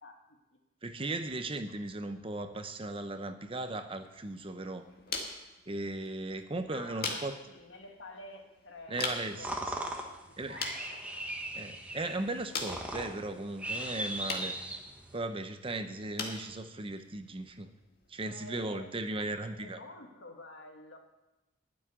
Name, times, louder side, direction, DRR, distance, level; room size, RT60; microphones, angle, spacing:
voice 1, 0.0-0.4 1.6-1.7 6.7-11.0 18.2-21.0, left 2 dB, 75° left, 3 dB, 1.8 m, -50 dB
voice 2, 0.8-4.9 5.7-7.4 8.9-9.8 10.4-10.6 11.5-14.5 15.1-17.7 18.1-19.8, right 2 dB, 30° right, 8 dB, 0.8 m, -37 dB
sound 1, 3.9-18.9, left 4 dB, 55° left, 1.9 m, -44 dB
sound 2, 9.0-15.2, right 1 dB, 5° right, 1.2 m, -39 dB
12.5 x 6.4 x 9.6 m, 1.0 s
head